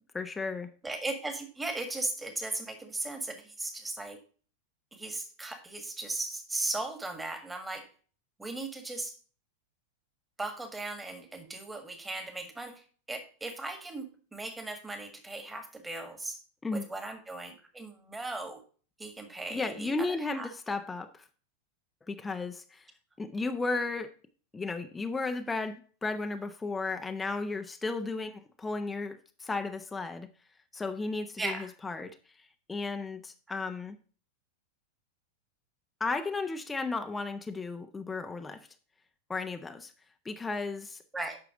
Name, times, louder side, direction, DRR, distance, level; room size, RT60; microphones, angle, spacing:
voice 1, 0.1-0.7 16.6-16.8 19.5-21.2 22.1-22.9 23.2-24.1 24.5-30.3 30.7-32.2 32.7-34.0 36.0-38.6 39.3-39.9 40.2-41.0, left 3 dB, 10° left, 7 dB, 0.7 m, -34 dB
voice 2, 0.8-4.2 4.9-7.9 8.4-9.2 10.4-14.1 14.3-16.4 16.7-18.6 19.0-20.5 31.4-31.7 41.1-41.4, right 2 dB, 10° right, 6 dB, 1.7 m, -37 dB
9.1 x 5.9 x 3.7 m, 0.40 s
figure-of-eight pair, 90°, 0 cm